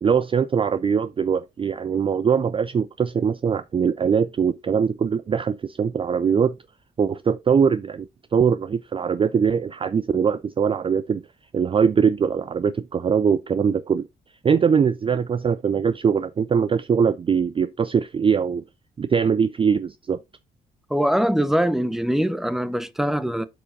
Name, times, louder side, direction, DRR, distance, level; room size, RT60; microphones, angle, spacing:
voice 1, 0.0-6.6 7.0-11.2 11.5-14.1 14.4-18.6 19.0-20.2, right 6 dB, 30° right, 0.4 m, -22 dB
voice 2, 20.9-23.4, equal, ahead, 0.8 m, -22 dB
13.0 x 4.5 x 2.6 m
hypercardioid pair, 45°, 20 cm